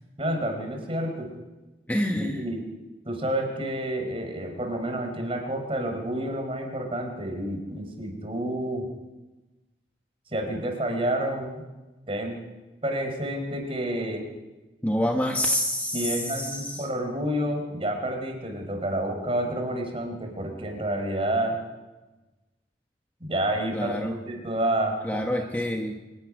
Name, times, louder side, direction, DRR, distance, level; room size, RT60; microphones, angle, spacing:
voice 1, 0.2-1.3 2.2-2.6 3.0-8.9 10.3-11.6 12.1-12.4 12.8-14.2 15.9-21.6 23.2-25.5, right 1 dB, 30° right, 3 dB, 4.7 m, -29 dB
voice 2, 1.9-2.4 14.8-16.9 23.7-24.2 25.0-26.0, left 1 dB, 10° left, 2 dB, 1.3 m, -27 dB
24.5 x 11.5 x 10.0 m, 1.1 s
head